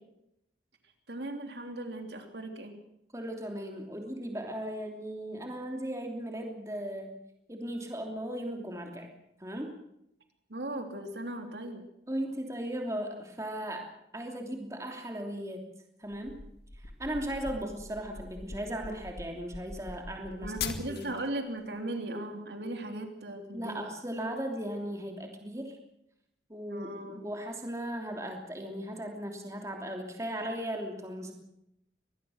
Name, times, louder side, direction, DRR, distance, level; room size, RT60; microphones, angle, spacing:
voice 1, 1.1-2.8 10.5-11.8 20.4-23.8 26.7-27.2, right 1 dB, 70° right, 5 dB, 3.2 m, -38 dB
voice 2, 3.1-7.1 7.5-9.1 9.4-9.7 12.1-15.7 16.0-16.4 16.8-20.5 20.9-21.1 22.8-23.0 23.5-25.8 26.5-31.3, right 1 dB, 15° right, 2 dB, 3.0 m, -37 dB
sound 1, 16.1-21.3, left 4 dB, 65° left, 2.2 m, -41 dB
24.0 x 19.5 x 6.5 m, 0.79 s
head